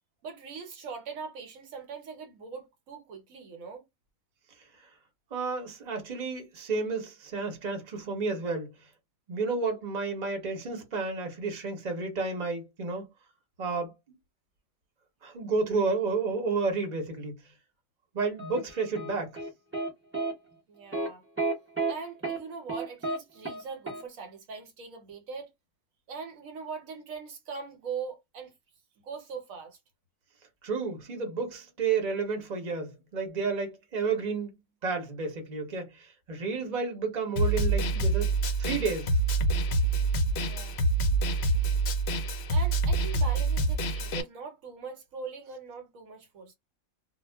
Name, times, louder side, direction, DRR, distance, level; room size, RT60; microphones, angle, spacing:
voice 1, 0.2-3.8 20.7-21.2 21.9-25.5 26.1-28.5 29.0-29.8 40.4-40.8 42.5-46.5, right 5 dB, 70° right, 1.1 m, -41 dB
voice 2, 5.3-8.7 9.3-13.0 13.6-14.2 15.2-17.4 18.1-19.4 30.6-38.3 38.6-39.2, right 4 dB, 35° right, 0.8 m, -31 dB
sound 1, 18.4-19.9 20.1-20.3 20.9-21.1 21.4-21.9 22.2-22.4 22.7-23.2 23.4-23.6 23.9-24.0, right 3 dB, 15° right, 0.5 m, -31 dB
Snare drum, 37.4-44.2, right 2 dB, 65° left, 0.7 m, -26 dB
2.3 x 2.2 x 3.3 m
omnidirectional pair, 1.5 m